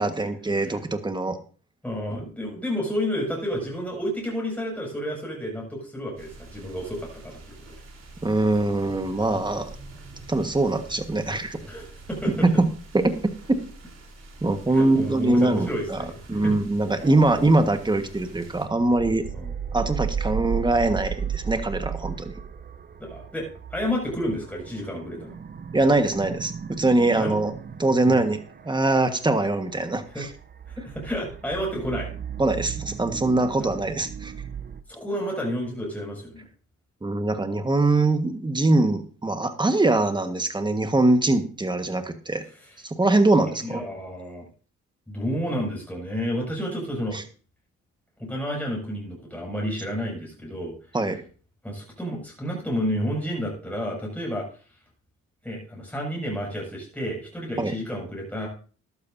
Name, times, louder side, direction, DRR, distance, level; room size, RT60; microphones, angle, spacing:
voice 1, 0.0-1.4 8.2-9.7 10.3-11.6 12.4-12.7 12.9-13.6 14.4-16.0 16.3-19.2 19.7-22.3 25.7-27.5 27.8-28.4 28.6-30.3 32.4-34.3 37.0-42.4 42.8-43.8 47.1-47.2 50.9-51.2 57.6-57.7, right 2 dB, 15° right, 8 dB, 1.5 m, -22 dB
voice 2, 1.8-7.4 11.7-12.5 14.7-16.5 19.3-19.5 23.0-25.3 27.2-27.3 28.1-28.2 30.1-30.2 30.7-32.1 33.5-33.7 34.9-36.4 43.6-44.5 45.1-47.2 48.2-50.7 51.6-54.5 55.4-58.5, equal, 5° left, -2 dB, 6.6 m, -30 dB
sound 1, 6.2-18.7, right 2 dB, 55° right, 4.0 m, -45 dB
sound 2, 17.0-34.8, right 7 dB, 30° right, 0.8 m, -36 dB
13.5 x 12.0 x 2.8 m, 0.39 s
cardioid pair, 90°, 30 cm